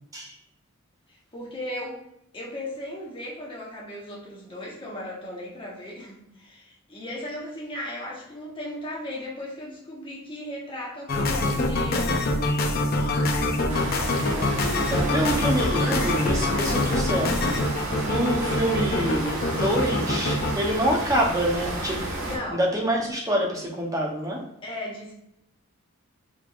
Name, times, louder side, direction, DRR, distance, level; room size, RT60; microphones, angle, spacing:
voice 1, 1.1-2.0 2.3-12.2 22.2-22.6 24.6-25.1, left 1 dB, 25° left, -4 dB, 1.2 m, -36 dB
sound 1, 11.1-20.5, left 2 dB, 45° left, 0.6 m, -25 dB
sound 2, 13.7-22.4, right 1 dB, 90° right, 1.2 m, -32 dB
voice 2, 14.9-17.5 18.0-22.0 22.5-24.4, right 1 dB, 15° right, -1 dB, 0.7 m, -26 dB
5.0 x 3.4 x 2.4 m, 0.78 s
head